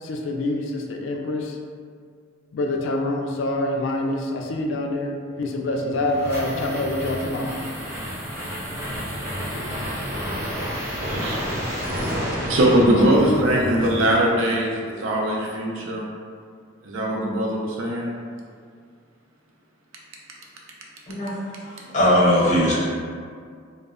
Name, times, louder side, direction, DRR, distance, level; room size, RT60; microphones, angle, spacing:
voice 1, 0.0-1.6 2.5-7.6 9.5-9.9 11.7-11.9 13.0-14.1, left 2 dB, 65° left, 2 dB, 0.3 m, -27 dB
sound 1, 5.6-14.4, equal, 10° right, 0.6 m, -30 dB
voice 2, 10.9-14.7 15.0-16.0 16.8-18.1 21.3-21.4, right 1 dB, 75° right, -2 dB, 0.5 m, -22 dB
voice 3, 21.6-22.7, equal, 35° left, -7 dB, 0.7 m, -19 dB
2.0 x 2.0 x 3.5 m, 2.1 s
head